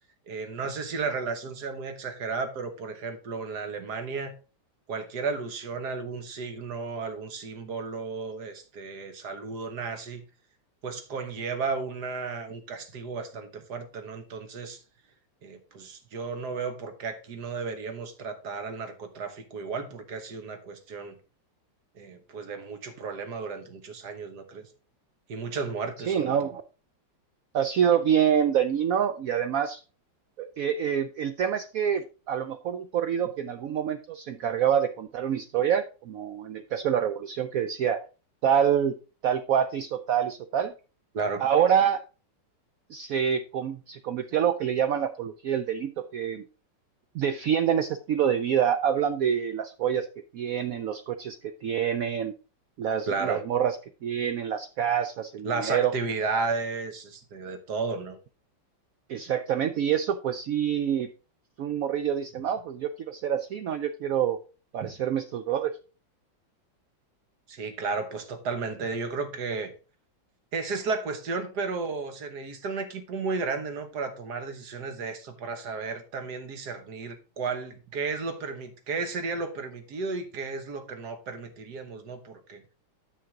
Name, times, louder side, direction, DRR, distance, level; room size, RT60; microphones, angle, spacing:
voice 1, 0.3-4.3 4.9-10.2 10.8-14.8 15.4-21.1 21.9-24.7 25.3-26.5 41.1-41.4 53.1-53.4 55.4-58.2 64.8-64.9 67.5-69.7 70.5-82.6, right 4 dB, 60° right, 1.7 m, -33 dB
voice 2, 26.0-26.6 27.5-29.8 30.4-38.0 38.4-38.9 39.2-40.7 41.4-42.0 42.9-46.5 47.1-50.1 50.3-52.3 52.8-53.8 54.0-55.9 59.1-61.1 61.6-64.4 64.7-65.7, right 8 dB, 85° right, 0.7 m, -26 dB
9.3 x 6.0 x 3.7 m
omnidirectional pair, 2.1 m